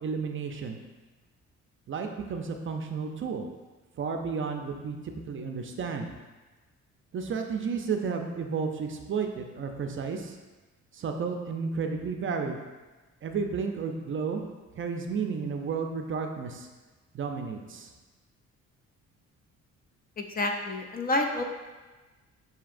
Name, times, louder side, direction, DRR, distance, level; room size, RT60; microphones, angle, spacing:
voice 1, 0.0-0.8 1.9-3.4 4.0-6.1 7.1-10.4 10.9-12.6 13.2-14.4 14.7-16.7 17.1-17.9, right 5 dB, 40° right, 4 dB, 0.5 m, -32 dB
voice 2, 20.2-21.4, left 2 dB, 30° left, 3 dB, 0.5 m, -29 dB
6.8 x 2.8 x 2.5 m, 1.2 s
cardioid pair, 90°, 30 cm